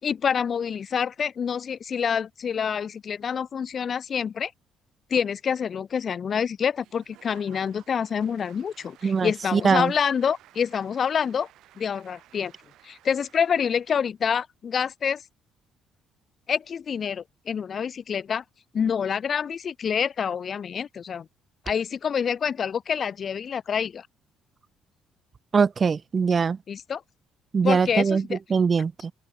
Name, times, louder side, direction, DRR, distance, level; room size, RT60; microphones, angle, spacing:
voice 1, 0.0-4.5 5.1-11.5 11.8-12.5 12.8-15.2 16.5-18.4 18.7-21.3 21.7-24.1 26.7-27.0 27.6-28.4, left 7 dB, 50° left, 2.4 m, -27 dB
Applause / Crowd, 6.8-14.1, right 14 dB, 75° right, 6.3 m, -55 dB
voice 2, 9.0-9.9 25.5-26.6 27.5-29.1, right 5 dB, 40° right, 0.7 m, -22 dB
open air
supercardioid pair, 75°, 0 cm